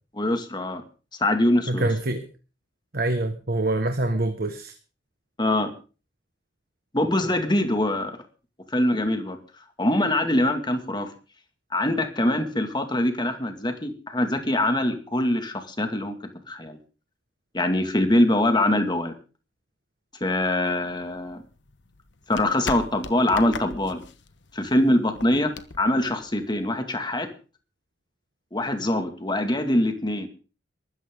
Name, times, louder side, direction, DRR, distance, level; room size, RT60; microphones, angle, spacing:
voice 1, 0.2-0.8 1.2-1.9 5.4-5.7 6.9-8.1 8.7-9.4 9.8-11.1 11.7-16.1 16.5-16.8 17.5-19.1 20.2-21.4 22.3-24.0 24.5-25.5 25.8-27.3 28.5-30.3, left 1 dB, 25° left, 7 dB, 2.2 m, -23 dB
voice 2, 1.7-2.2 2.9-4.7, right 2 dB, 55° right, 6 dB, 1.6 m, -25 dB
sound 1, 20.8-26.8, left 4 dB, 70° left, 1.3 m, -40 dB
22.5 x 13.5 x 3.8 m, 0.36 s
head